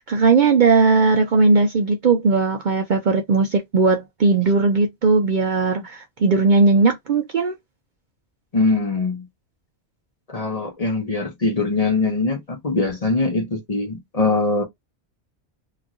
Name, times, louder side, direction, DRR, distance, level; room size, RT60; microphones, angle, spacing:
voice 1, 0.0-7.5, right 4 dB, 55° right, 0.6 m, -18 dB
voice 2, 8.5-9.3 10.3-14.6, left 3 dB, 35° left, 0.9 m, -22 dB
3.0 x 2.5 x 2.4 m
omnidirectional pair, 1.2 m